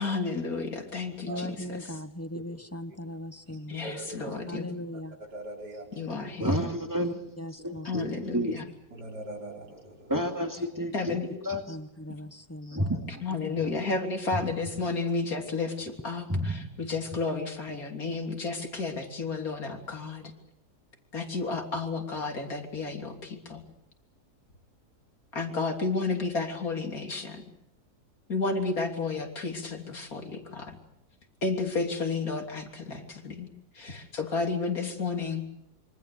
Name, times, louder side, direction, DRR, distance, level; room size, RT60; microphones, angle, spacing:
voice 1, 0.0-1.9 3.7-4.7 5.9-6.6 7.8-8.7 10.9-11.3 12.1-12.2 13.1-20.3 21.1-23.7 25.3-27.4 28.3-30.8 31.4-33.5 33.7-35.6, left 3 dB, 60° left, 3.7 m, -32 dB
voice 2, 1.2-4.0 4.5-5.2 6.6-6.7 7.0-8.0 11.7-13.0 13.4-13.6, left 1 dB, 10° left, 0.9 m, -39 dB
voice 3, 3.5-4.4 5.3-6.2 8.9-10.1, right 1 dB, 80° right, 5.4 m, -42 dB
voice 4, 6.4-7.3 7.6-8.6 10.1-11.6 12.7-13.2 14.3-14.5 16.3-16.7, equal, 10° right, 2.5 m, -30 dB
26.5 x 24.5 x 6.9 m
omnidirectional pair, 1.7 m